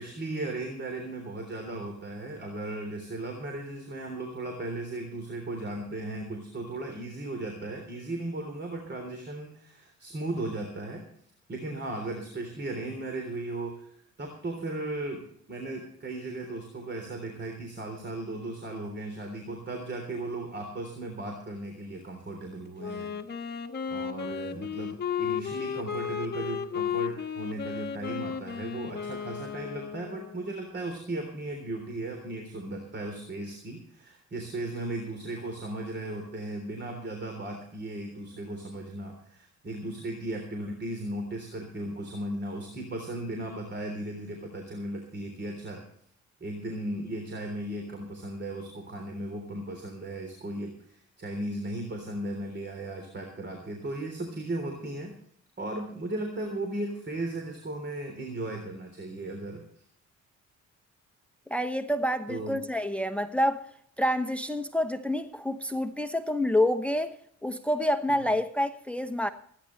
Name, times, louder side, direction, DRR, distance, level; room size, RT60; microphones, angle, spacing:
voice 1, 0.0-11.0 11.5-23.1 23.9-45.8 46.4-55.1 55.6-59.6 62.3-62.6, right 2 dB, 35° right, 3.5 m, -36 dB
Wind instrument woodwind instrument, 22.8-30.6, left 7 dB, 35° left, 1.3 m, -34 dB
voice 2, 61.5-63.6 64.0-67.1 67.4-69.3, left 1 dB, 5° left, 0.9 m, -28 dB
24.5 x 10.5 x 3.2 m
cardioid pair, 90°, 30 cm